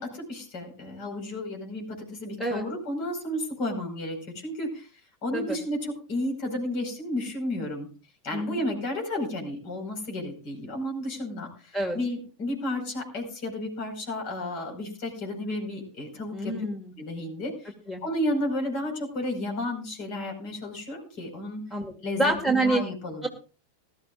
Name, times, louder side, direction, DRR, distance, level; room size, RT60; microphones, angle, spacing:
voice 1, 0.0-4.9 5.2-7.9 8.2-16.5 17.0-17.7 18.0-21.6 22.0-23.3, left 1 dB, 40° left, 2 dB, 5.1 m, -32 dB
voice 2, 8.3-8.8 11.7-12.0 16.3-16.8 17.9-18.0 21.7-21.9 22.2-22.8 23.2-23.3, right 2 dB, 10° left, 5 dB, 2.0 m, -27 dB
20.5 x 12.5 x 2.5 m, 0.35 s
figure-of-eight pair, 90°, 0 cm